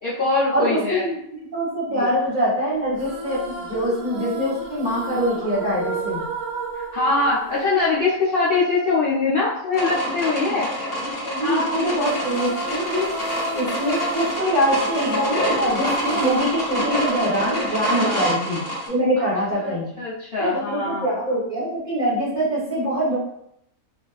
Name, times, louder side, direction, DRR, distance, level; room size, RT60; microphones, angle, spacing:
voice 1, 0.0-1.1 1.9-2.1 6.7-10.7 11.4-12.0 17.9-18.3 19.2-19.3 19.6-21.1, left 3 dB, 65° left, -8 dB, 0.5 m, -23 dB
voice 2, 0.5-6.2 11.2-13.1 13.5-18.6 18.9-19.9 20.4-23.2, equal, 35° right, -7 dB, 1.0 m, -24 dB
sound 1, 3.0-8.5 12.0-18.4, right 3 dB, 90° right, 1.2 m, -33 dB
sound 2, 9.7-18.9, equal, 40° left, 1.0 m, -27 dB
2.5 x 2.3 x 2.3 m, 0.74 s
omnidirectional pair, 1.5 m